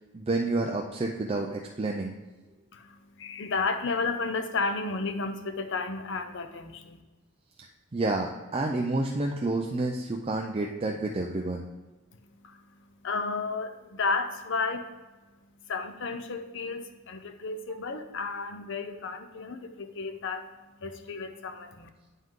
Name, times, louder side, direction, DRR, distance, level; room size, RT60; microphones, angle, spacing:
voice 1, 0.1-2.2 7.9-11.6, right 2 dB, 30° right, 1 dB, 0.5 m, -29 dB
voice 2, 2.7-7.0 12.1-21.9, left 4 dB, 60° left, 8 dB, 0.7 m, -33 dB
9.1 x 5.5 x 3.7 m, 1.2 s
head